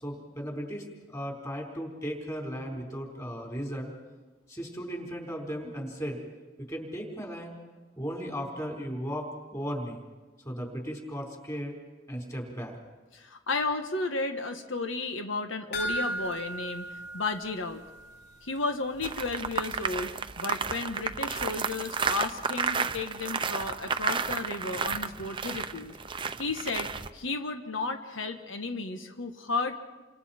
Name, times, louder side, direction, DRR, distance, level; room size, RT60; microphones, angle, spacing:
voice 1, 0.0-3.9 4.5-6.2 6.7-7.6 8.0-10.0 10.4-11.8 12.1-12.8, equal, 15° left, 0 dB, 4.2 m, -36 dB
voice 2, 13.1-16.9 17.1-17.8 18.4-26.0 26.4-26.9 27.1-29.8, left 3 dB, 80° left, 6 dB, 1.4 m, -33 dB
sound 1, 15.7-18.3 18.6-18.7 19.1-19.2, equal, 60° left, 4.1 m, -35 dB
sound 2, 19.0-27.1, right 5 dB, 25° right, 0.7 m, -32 dB
29.5 x 26.0 x 4.4 m, 1.2 s
head